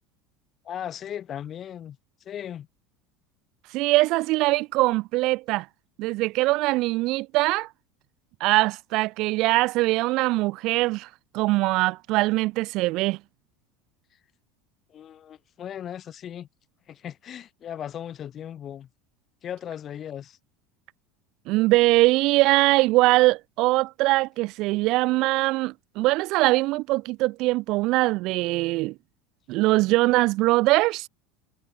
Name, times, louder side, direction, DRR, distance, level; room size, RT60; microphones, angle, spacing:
voice 1, 0.6-2.0 2.2-2.7 14.9-16.5 16.9-18.9 19.4-20.4, left 10 dB, 35° left, 5.0 m, -37 dB
voice 2, 3.7-5.7 6.0-7.7 8.4-11.1 11.3-13.2 21.5-28.9 29.5-31.1, right 21 dB, 55° right, 0.6 m, -22 dB
supercardioid pair, 125°, 0 cm